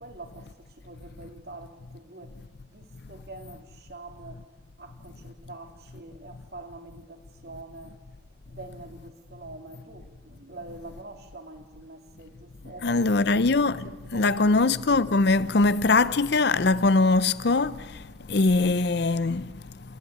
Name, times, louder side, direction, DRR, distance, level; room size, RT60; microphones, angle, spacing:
voice 1, 0.0-2.4 2.7-8.0 8.5-13.4 13.7-14.7, right 2 dB, 55° right, 2.4 m, -45 dB
voice 2, 12.8-17.8 18.3-19.5, left 3 dB, 60° left, 0.7 m, -22 dB
29.5 x 14.5 x 9.4 m
head